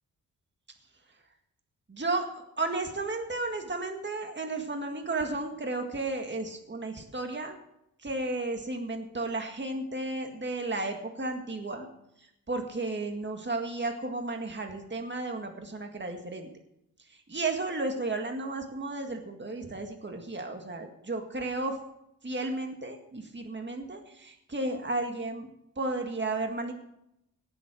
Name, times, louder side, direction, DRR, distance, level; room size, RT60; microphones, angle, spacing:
voice 1, 1.9-2.3 2.6-7.6 8.0-11.9 12.5-16.5 17.3-21.8 22.2-25.5 25.8-26.7, right 2 dB, 30° right, 4 dB, 1.9 m, -33 dB
17.5 x 7.8 x 6.3 m, 0.80 s
wide cardioid pair, 95°, 36 cm